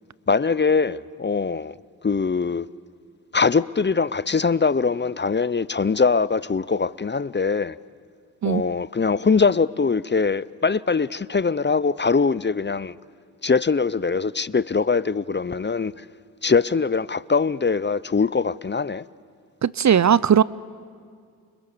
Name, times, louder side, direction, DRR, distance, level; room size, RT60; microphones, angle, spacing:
voice 1, 0.3-1.7 2.0-2.7 3.3-7.8 8.4-12.9 13.4-16.0 16.4-19.0, left 4 dB, 25° left, 0.7 m, -22 dB
voice 2, 19.6-20.4, right 8 dB, 45° right, 0.6 m, -17 dB
30.0 x 29.0 x 6.9 m
supercardioid pair, 45°, 40 cm